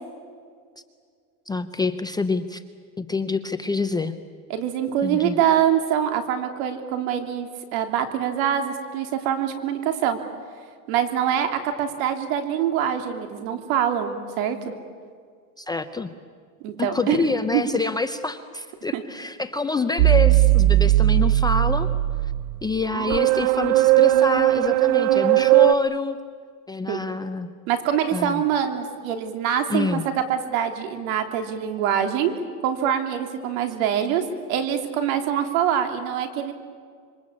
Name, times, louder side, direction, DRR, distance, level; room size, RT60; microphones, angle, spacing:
voice 1, 1.5-2.6 3.0-4.1 5.0-5.4 15.6-16.1 16.8-21.9 22.6-26.2 26.7-27.5 28.1-28.4 29.7-30.0, left 3 dB, 10° left, 9 dB, 0.6 m, -26 dB
voice 2, 4.5-10.2 10.9-14.6 16.6-17.2 17.5-17.6 18.9-19.0 26.9-27.0 27.7-32.3 32.6-36.5, right 9 dB, 65° right, 6 dB, 3.3 m, -24 dB
sound 1, 20.0-25.7, right 16 dB, 50° right, 0.7 m, -18 dB
26.5 x 24.0 x 8.5 m, 2.1 s
supercardioid pair, 145°, 45 cm